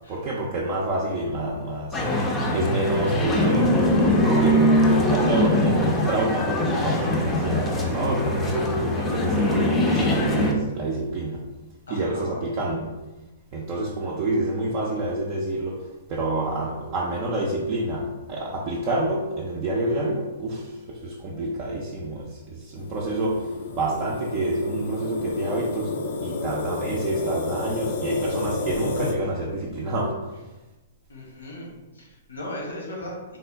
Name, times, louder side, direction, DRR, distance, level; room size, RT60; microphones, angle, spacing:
voice 1, 0.1-11.5 11.9-13.0 13.5-30.3, right 1 dB, 40° right, -4 dB, 0.5 m, -28 dB
sound 1, 1.9-10.5, left 1 dB, 20° left, 0.5 m, -22 dB
voice 2, 11.9-12.4 31.1-33.4, left 1 dB, 85° left, -3 dB, 1.1 m, -37 dB
sound 2, 22.8-29.1, left 3 dB, 65° left, 0.5 m, -31 dB
3.6 x 2.1 x 3.4 m, 1.1 s
hypercardioid pair, 125°, 0 cm